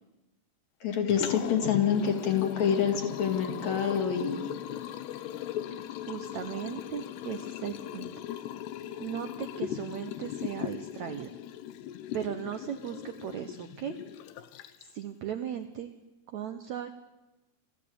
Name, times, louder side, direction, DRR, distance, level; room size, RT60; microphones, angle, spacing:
voice 1, 0.8-4.5, left 7 dB, 50° left, 5 dB, 3.1 m, -27 dB
Liquid, 0.9-15.0, left 11 dB, 90° left, 3.1 m, -38 dB
voice 2, 6.1-8.1 9.0-11.3 12.1-14.0 14.8-15.9 16.3-16.9, right 9 dB, 85° right, 7 dB, 1.6 m, -37 dB
25.5 x 14.5 x 8.6 m, 1.1 s
omnidirectional pair, 4.6 m